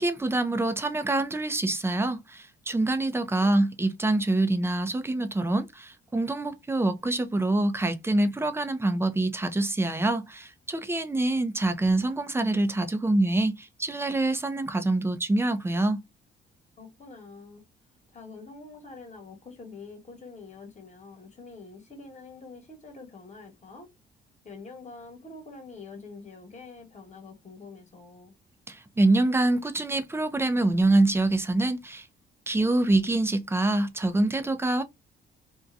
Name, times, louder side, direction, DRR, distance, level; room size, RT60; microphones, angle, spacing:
voice 1, 0.0-16.0 28.7-32.1 32.5-34.8, right 2 dB, 10° right, 0.5 m, -25 dB
voice 2, 3.3-3.6 16.8-17.6 18.1-23.9 24.4-28.3, left 3 dB, 35° left, 1.3 m, -46 dB
2.6 x 2.2 x 2.4 m
cardioid pair, 90°, 20 cm